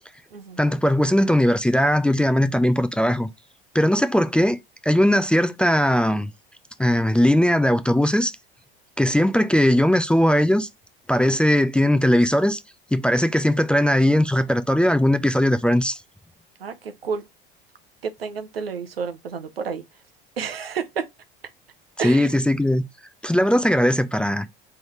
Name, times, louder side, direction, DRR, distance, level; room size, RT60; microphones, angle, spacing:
voice 1, 0.6-3.3 3.7-4.6 4.8-6.3 6.8-8.3 9.0-10.7 11.1-12.6 12.9-16.0 22.0-22.8 23.2-24.5, left 1 dB, 5° left, 0.4 m, -19 dB
voice 2, 16.6-17.2 18.0-19.8 20.4-21.1 22.0-22.3, right 6 dB, 90° right, 0.6 m, -30 dB
3.8 x 3.3 x 3.0 m
hypercardioid pair, 70°, 29 cm